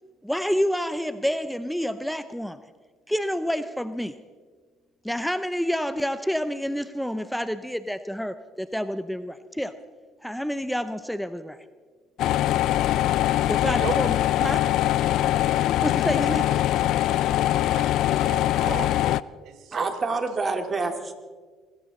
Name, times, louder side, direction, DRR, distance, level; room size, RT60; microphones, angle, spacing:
voice 1, 0.2-2.6 3.1-4.2 5.0-9.7 10.2-11.6 13.5-14.1 14.4-14.7 15.8-16.5, equal, ahead, 12 dB, 0.7 m, -28 dB
sound 1, 12.2-19.2, left 14 dB, 70° left, 0.4 m, -22 dB
voice 2, 13.6-14.0 17.6-19.0 19.4-20.3, right 8 dB, 70° right, 10 dB, 1.1 m, -36 dB
voice 3, 19.7-21.1, right 3 dB, 35° right, 7 dB, 2.3 m, -27 dB
23.5 x 14.0 x 4.0 m, 1.5 s
supercardioid pair, 65°, 0 cm